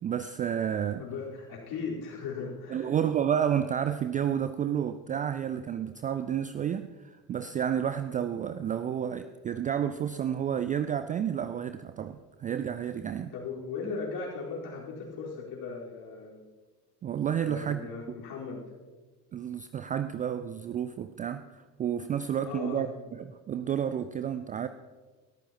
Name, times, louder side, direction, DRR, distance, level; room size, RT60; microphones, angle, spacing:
voice 1, 0.0-1.1 2.7-13.3 17.0-17.8 18.1-18.2 19.3-24.7, right 9 dB, 20° right, 11 dB, 0.3 m, -31 dB
voice 2, 1.0-3.0 13.3-16.4 17.3-18.6 22.4-22.9, left 4 dB, 50° left, -3 dB, 4.4 m, -38 dB
21.5 x 14.0 x 3.0 m, 1.3 s
figure-of-eight pair, 60°, 48 cm